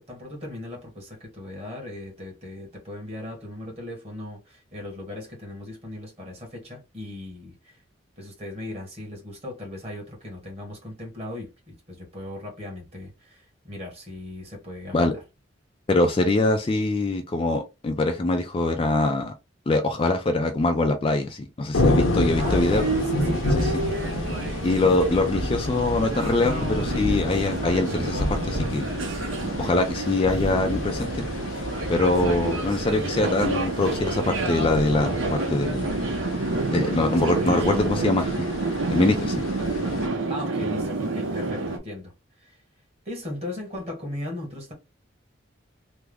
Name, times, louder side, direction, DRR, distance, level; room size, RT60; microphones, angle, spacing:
voice 1, 0.0-7.8 8.2-15.2 22.4-23.9 37.0-38.2 40.3-42.1 42.4-42.6 43.0-44.7, left 1 dB, 30° right, 1.4 m, -37 dB
voice 2, 15.9-19.3 19.7-22.8 23.5-23.7 24.6-28.9 29.6-31.3 31.9-35.9 36.7-38.3 38.9-39.4, left 2 dB, 25° left, 0.3 m, -23 dB
sound 1, 21.7-40.1, left 1 dB, 85° left, 0.8 m, -29 dB
sound 2, 22.4-41.8, right 2 dB, 70° right, 0.7 m, -29 dB
3.4 x 2.0 x 3.4 m
head